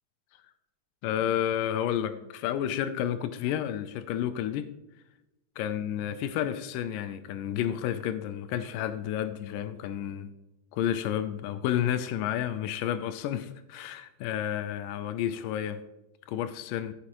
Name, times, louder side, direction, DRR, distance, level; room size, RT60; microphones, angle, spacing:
voice 1, 1.0-4.7 5.6-10.3 10.7-15.8 16.3-16.9, left 10 dB, 85° left, 1.9 m, -31 dB
14.5 x 7.0 x 3.0 m
omnidirectional pair, 4.4 m